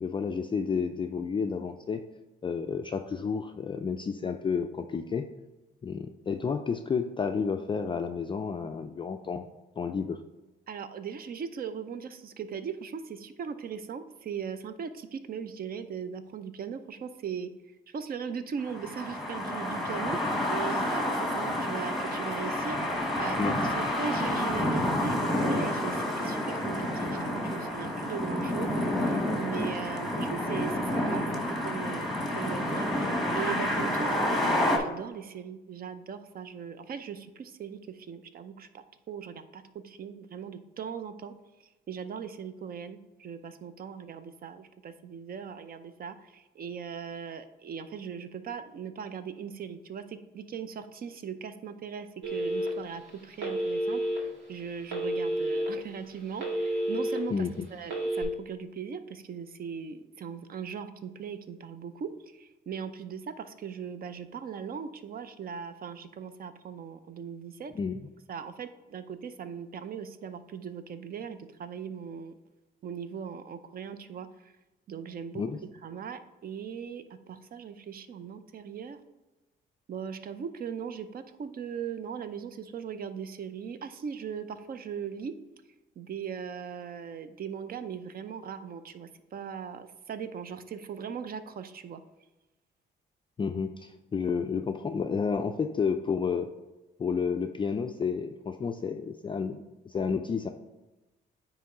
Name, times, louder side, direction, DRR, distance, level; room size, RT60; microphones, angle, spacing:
voice 1, 0.0-2.0 2.4-5.3 5.8-9.4 9.8-10.2 23.4-23.5 57.3-57.7 67.7-68.0 75.3-75.6 93.4-96.5 97.0-100.5, left 5 dB, 25° left, 6 dB, 0.3 m, -31 dB
voice 2, 10.7-17.5 17.9-20.2 20.5-41.3 41.9-67.7 68.3-72.3 72.8-74.5 74.9-75.4 75.8-79.0 79.9-85.3 86.0-92.0, right 7 dB, 50° right, 11 dB, 0.6 m, -39 dB
sound 1, 18.6-34.8, left 1 dB, ahead, 1.2 m, -29 dB
Telephone, 52.2-52.9 53.4-54.2 54.9-55.7 56.1-57.2 57.8-58.2, right 1 dB, 80° right, 2.1 m, -30 dB
9.1 x 3.1 x 3.7 m, 1.1 s
cardioid pair, 90°, 20 cm